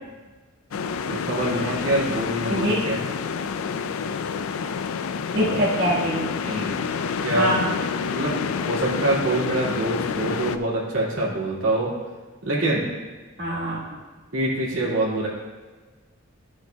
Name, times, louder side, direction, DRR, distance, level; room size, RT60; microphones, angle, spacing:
sound 1, 0.7-10.6, left 6 dB, 90° left, 0.4 m, -28 dB
voice 1, 1.1-3.0 5.4-5.6 6.4-6.7 7.2-7.5 8.1-11.9 12.4-12.9 14.3-15.3, right 1 dB, 80° right, -6 dB, 2.3 m, -25 dB
voice 2, 2.5-2.8 5.3-6.3 7.3-7.8 13.4-14.0, equal, 50° right, -8 dB, 1.7 m, -24 dB
12.5 x 6.2 x 2.3 m, 1.3 s
head